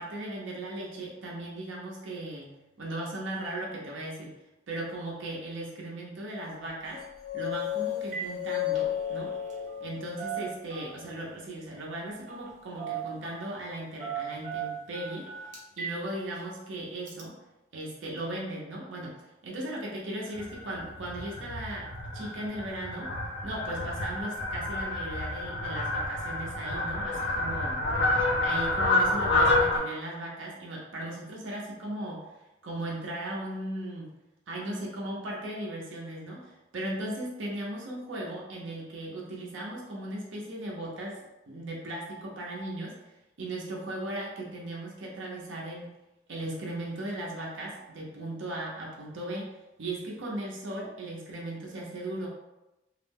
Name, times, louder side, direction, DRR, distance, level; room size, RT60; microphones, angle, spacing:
voice 1, 0.0-4.4 4.7-7.0 7.3-9.3 9.8-15.3 15.8-17.4 17.7-19.2 19.4-23.1 23.4-27.8 28.4-32.3 32.6-34.1 34.5-41.2 41.5-43.0 43.4-45.9 46.3-49.5 49.8-52.3, right 1 dB, 85° right, -3 dB, 0.6 m, -37 dB
sound 1, 6.9-11.0, left 12 dB, 25° left, 0.5 m, -34 dB
Telephone, 7.5-7.7 8.0-8.3 8.6-9.9 10.2-11.1 12.3-12.5 12.8-13.5 14.0-16.0 16.4-16.5 17.1-17.2, right 8 dB, 40° right, 0.5 m, -38 dB
Fowl, 20.4-29.8, left 2 dB, 75° left, 0.5 m, -29 dB
2.4 x 2.0 x 3.4 m, 0.98 s
head